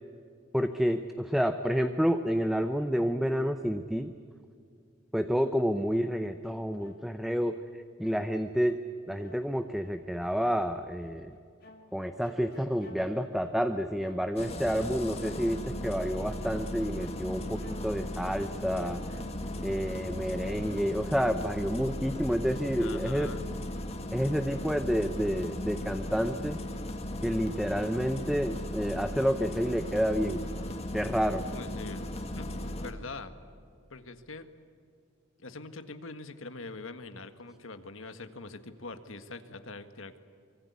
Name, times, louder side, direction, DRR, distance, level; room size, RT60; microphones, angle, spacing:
voice 1, 0.5-4.1 5.1-8.8 9.1-11.4 11.9-19.0 19.6-23.3 24.1-26.6 27.2-30.4 30.9-31.4, equal, ahead, 8 dB, 0.7 m, -29 dB
sound 1, 6.2-7.6 8.0-19.6, equal, 50° left, 2.4 m, -54 dB
Engine starting, 14.4-32.9, left 1 dB, 30° left, 1.9 m, -37 dB
voice 2, 22.8-23.5 31.5-32.1 32.4-32.5 32.8-33.3 33.9-34.5 35.4-40.2, left 3 dB, 90° left, 9 dB, 1.7 m, -43 dB
24.5 x 24.0 x 8.2 m, 2.4 s
head